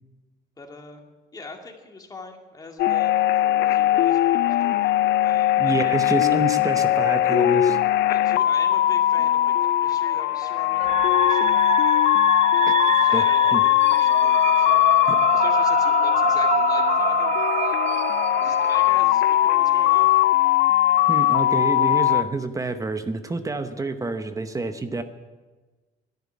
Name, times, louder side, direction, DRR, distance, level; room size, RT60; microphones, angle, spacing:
voice 1, 0.6-1.0 1.3-6.0 8.1-11.6 12.5-14.8 15.3-20.3, left 3 dB, 20° left, 2 dB, 2.2 m, -42 dB
sound 1, 2.8-22.2, left 13 dB, 75° left, 0.5 m, -20 dB
voice 2, 5.6-7.8 12.6-12.7 13.1-13.2 13.5-13.6 15.1-15.2 21.1-25.0, right 3 dB, 20° right, 9 dB, 0.9 m, -28 dB
sound 2, 10.8-18.9, right 9 dB, 45° right, 0.5 m, -27 dB
11.0 x 10.5 x 9.5 m, 1.3 s
cardioid pair, 110°, 17 cm